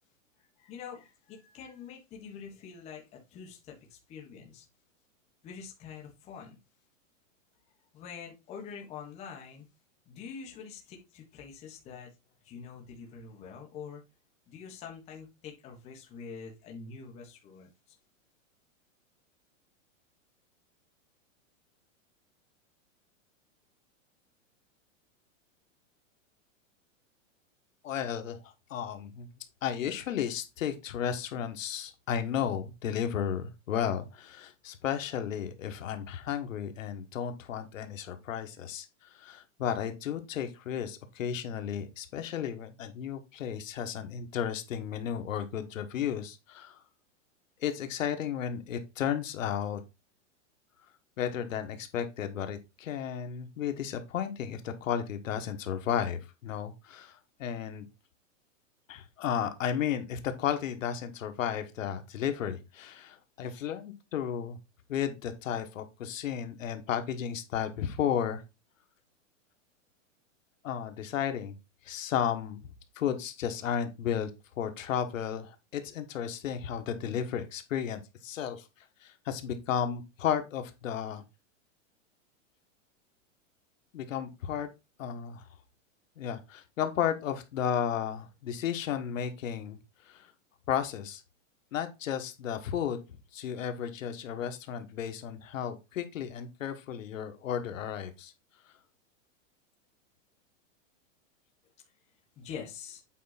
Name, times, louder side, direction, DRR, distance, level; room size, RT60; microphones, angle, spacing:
voice 1, 0.6-4.6 5.4-6.6 7.9-9.7 10.1-12.1 12.4-14.0 14.5-17.7 102.4-103.0, left 6 dB, 15° left, 0 dB, 1.5 m, -45 dB
voice 2, 27.8-29.3 29.6-46.8 47.6-49.8 51.2-57.9 58.9-64.6 64.9-68.4 70.6-71.6 71.8-72.6 72.9-74.3 74.6-78.7 79.0-81.2 83.9-84.7 85.0-85.5 86.2-89.8 90.0-90.3 90.7-91.2 91.7-93.0 93.3-98.3, left 9 dB, 75° left, 7 dB, 1.5 m, -33 dB
8.3 x 4.4 x 4.1 m, 0.25 s
supercardioid pair, 180°, 39 cm